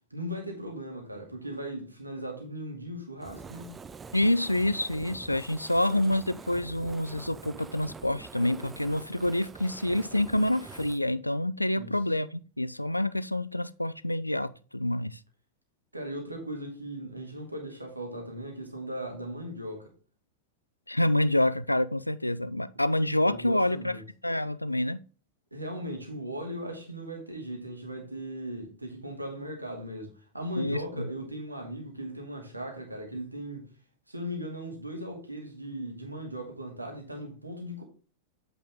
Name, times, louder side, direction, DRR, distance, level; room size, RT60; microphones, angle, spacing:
voice 1, 0.1-3.7 11.8-12.0 15.9-19.9 23.2-24.0 25.5-33.7 34.1-37.8, equal, 85° right, 2.3 m, -38 dB
Fire, 3.2-11.0, right 5 dB, 20° right, 0.5 m, -46 dB
voice 2, 4.1-15.2 20.9-23.9 24.2-25.0 30.6-31.1, left 1 dB, 85° left, 0.4 m, -27 dB
8.4 x 5.4 x 3.5 m
figure-of-eight pair, 90°, 0 cm